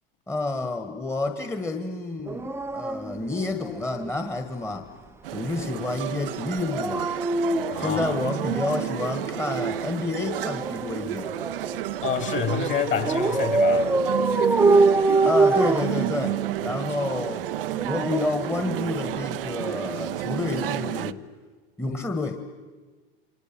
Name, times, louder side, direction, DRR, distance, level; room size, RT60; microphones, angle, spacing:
voice 1, 0.3-4.9 5.3-7.1 7.8-11.3 15.2-17.5 17.8-21.2 21.8-22.4, left 3 dB, 10° left, 1.7 m, -29 dB
Dog, 2.3-4.1 6.6-9.0 10.2-11.9 13.0-16.6 17.6-19.2 20.5-20.7, right 3 dB, 10° right, 0.8 m, -25 dB
sound 1, 5.2-21.1, right 14 dB, 65° right, 0.8 m, -31 dB
voice 2, 7.7-8.2 12.0-13.9, left 8 dB, 40° left, 3.4 m, -28 dB
29.0 x 24.5 x 7.6 m
figure-of-eight pair, 80°, 30 cm